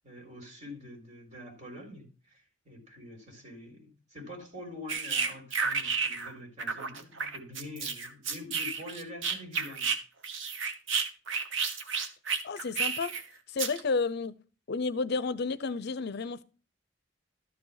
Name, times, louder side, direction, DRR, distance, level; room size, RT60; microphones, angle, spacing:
voice 1, 0.0-9.9, left 1 dB, 40° right, 4.2 m, -45 dB
sound 1, 4.9-6.3 6.6-10.0 10.2-13.2 13.6-13.8, right 5 dB, 90° right, 1.3 m, -31 dB
voice 2, 12.4-13.2 13.5-14.4 14.7-16.4, left 4 dB, 60° left, 0.6 m, -31 dB
13.0 x 4.9 x 5.7 m
head